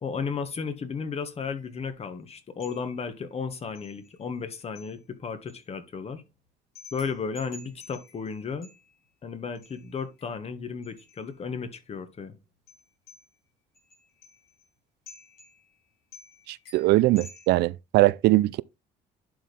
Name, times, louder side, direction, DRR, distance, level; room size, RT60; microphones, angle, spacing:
voice 1, 0.0-6.2 6.9-8.7 9.2-12.4, left 5 dB, 40° left, 1.5 m, -34 dB
sound 1, 1.6-2.1 2.6-3.3 3.7-4.4 4.7-5.6 6.7-9.1 9.5-11.3 12.7-13.4 13.7-14.7 15.1-15.8 16.1-17.6, left 3 dB, 70° left, 5.3 m, -52 dB
voice 2, 16.5-18.6, right 18 dB, 75° right, 0.4 m, -21 dB
11.0 x 4.3 x 3.5 m
cardioid pair, 110°, 17 cm